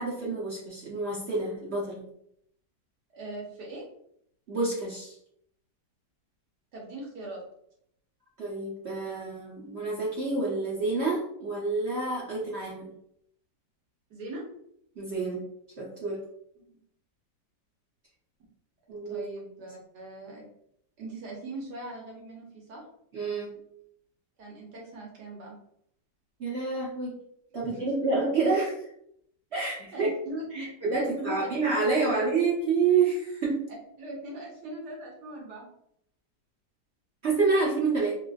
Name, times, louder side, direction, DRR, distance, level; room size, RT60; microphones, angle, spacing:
voice 1, 0.0-2.0 4.5-5.1 8.4-12.9 15.0-15.4 15.8-16.2 18.9-19.2 23.1-23.5 26.4-27.1 27.5-28.8 29.5-30.1 30.5-33.6 37.2-38.1, right 4 dB, 55° right, -5 dB, 0.7 m, -28 dB
voice 2, 3.1-3.8 6.7-7.4 14.1-14.4 16.7-16.8 19.1-20.5 21.0-22.8 24.4-25.6 27.7-27.8 29.9-30.7 31.0-31.4 32.1-32.2 34.0-35.7, right 1 dB, 70° right, -3 dB, 1.5 m, -40 dB
3.8 x 2.5 x 2.4 m, 0.72 s
omnidirectional pair, 1.9 m